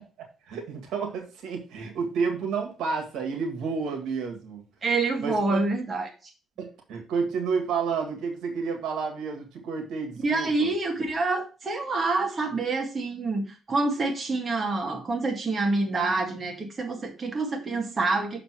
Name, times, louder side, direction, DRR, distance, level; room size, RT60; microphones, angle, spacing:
voice 1, 0.5-4.6 5.2-5.6 6.6-10.7, right 5 dB, 80° right, 3 dB, 1.8 m, -30 dB
voice 2, 4.8-6.1 10.2-18.4, right 3 dB, 35° right, 2 dB, 2.0 m, -27 dB
6.6 x 4.1 x 6.0 m, 0.32 s
cardioid pair, 90°, 0 cm